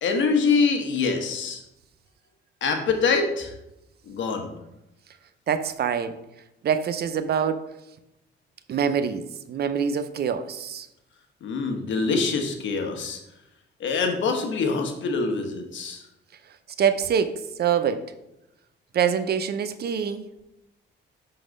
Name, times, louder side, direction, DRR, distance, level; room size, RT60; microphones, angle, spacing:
voice 1, 0.0-1.6 2.6-3.5 4.1-4.5 11.4-13.2 13.8-16.0, left 4 dB, 70° left, 5 dB, 1.2 m, -24 dB
voice 2, 5.5-6.2 6.6-7.6 8.7-10.9 16.8-18.1 18.9-20.2, right 7 dB, 55° right, 11 dB, 0.6 m, -25 dB
5.9 x 3.9 x 5.2 m, 0.88 s
cardioid pair, 90°, 20 cm